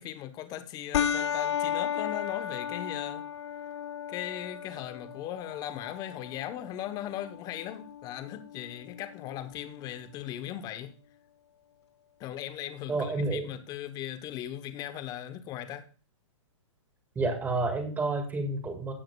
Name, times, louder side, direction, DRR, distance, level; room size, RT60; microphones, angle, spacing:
voice 1, 0.0-3.2 4.1-10.9 12.2-15.8, left 11 dB, 25° left, 0.9 m, -38 dB
sound 1, 0.9-9.9, left 9 dB, 60° left, 0.8 m, -35 dB
voice 2, 12.9-13.5 17.2-18.9, right 3 dB, 10° right, 1.8 m, -29 dB
16.0 x 7.5 x 2.3 m
hypercardioid pair, 145°, 16 cm